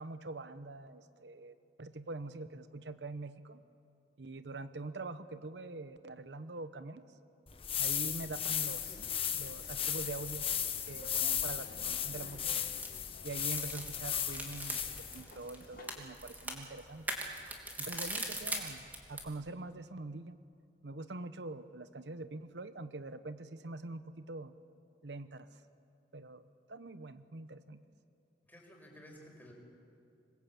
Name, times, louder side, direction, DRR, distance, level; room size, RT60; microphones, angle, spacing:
voice 1, 0.0-3.6 4.2-7.2 7.8-9.1 9.3-10.5 10.9-12.6 13.2-17.0 17.8-20.4 20.8-24.5 25.0-25.6 26.1-27.8, right 2 dB, 80° right, 12 dB, 0.9 m, -44 dB
sound 1, 7.5-15.2, left 9 dB, 35° left, 1.3 m, -36 dB
sound 2, 8.5-16.1, left 2 dB, 55° left, 2.0 m, -55 dB
sound 3, 12.3-19.3, right 1 dB, 10° right, 3.0 m, -42 dB
voice 2, 28.4-29.5, equal, 10° left, 0 dB, 5.5 m, -54 dB
27.0 x 22.0 x 8.6 m, 2.5 s
head